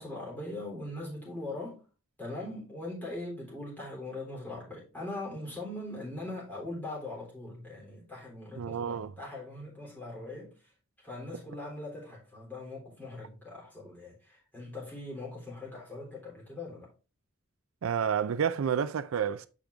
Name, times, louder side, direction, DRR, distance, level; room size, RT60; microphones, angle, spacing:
voice 1, 0.0-1.8 2.2-10.5 11.0-16.9, left 2 dB, 10° left, 3.5 m, -41 dB
voice 2, 8.6-9.1 17.8-19.5, right 7 dB, 75° right, 0.4 m, -30 dB
7.6 x 5.1 x 3.4 m
head